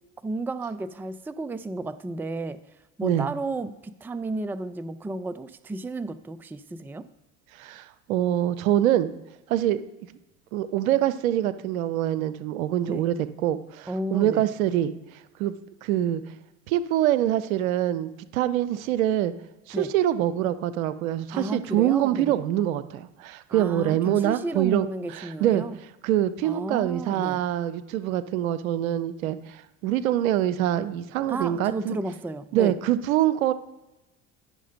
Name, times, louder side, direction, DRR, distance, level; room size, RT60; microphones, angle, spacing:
voice 1, 0.2-2.6 3.0-7.1 12.9-13.0 13.9-14.4 19.7-19.9 21.3-22.4 23.5-25.8 26.4-27.4 31.3-32.8, right 2 dB, 5° right, 15 dB, 0.4 m, -32 dB
voice 2, 7.6-9.1 9.5-9.8 10.5-13.2 13.4-14.9 15.4-15.5 15.8-16.2 16.7-19.3 19.7-25.6 26.0-32.0 32.5-33.5, right 12 dB, 90° right, 14 dB, 0.6 m, -25 dB
11.0 x 6.4 x 5.1 m, 0.99 s
hypercardioid pair, 75°, 40 cm